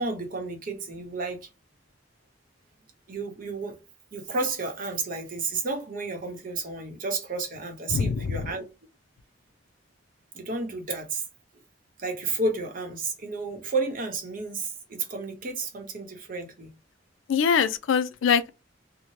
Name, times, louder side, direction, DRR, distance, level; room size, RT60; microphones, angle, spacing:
voice 1, 0.0-1.5 3.1-3.8 4.1-8.6 10.3-11.2 12.0-16.7, right 3 dB, 45° right, 0.8 m, -31 dB
voice 2, 7.9-8.4 17.3-18.5, left 6 dB, 75° left, 0.4 m, -23 dB
2.7 x 2.1 x 3.0 m
head